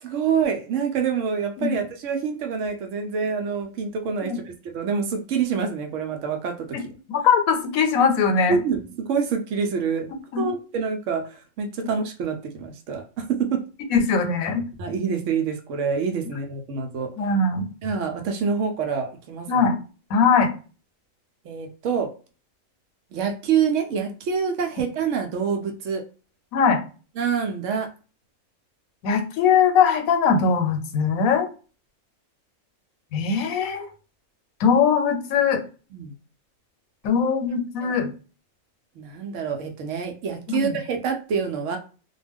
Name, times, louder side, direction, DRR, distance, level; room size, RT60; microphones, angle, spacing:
voice 1, 0.0-6.7 8.5-10.1 10.4-13.6 14.8-17.1 17.8-19.7 21.4-22.1 23.1-26.0 27.2-27.9 35.9-36.1 37.8-37.9 39.0-41.8, right 6 dB, 70° right, 5 dB, 0.9 m, -26 dB
voice 2, 7.1-8.5 10.3-10.5 13.9-14.6 17.2-17.7 19.5-19.8 20.1-20.5 26.5-26.8 29.0-31.5 33.1-33.9 34.6-35.6 37.0-38.1 40.5-40.8, left 6 dB, 90° left, 6 dB, 1.0 m, -21 dB
2.4 x 2.1 x 3.4 m, 0.36 s
omnidirectional pair, 1.4 m